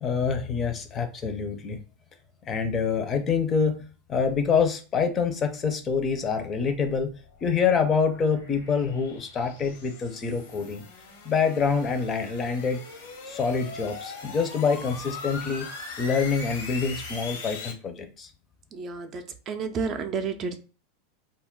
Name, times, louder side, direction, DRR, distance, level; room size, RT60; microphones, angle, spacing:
voice 1, 0.0-1.8 2.4-7.1 7.4-10.8 11.2-12.8 13.3-15.7 16.0-18.3, left 5 dB, 30° left, 7 dB, 0.5 m, -26 dB
sound 1, 6.8-17.7, left 4 dB, 85° left, 1.0 m, -41 dB
voice 2, 18.7-20.6, right 5 dB, 35° right, 7 dB, 0.5 m, -31 dB
2.3 x 2.0 x 3.7 m, 0.36 s
supercardioid pair, 125°, 0 cm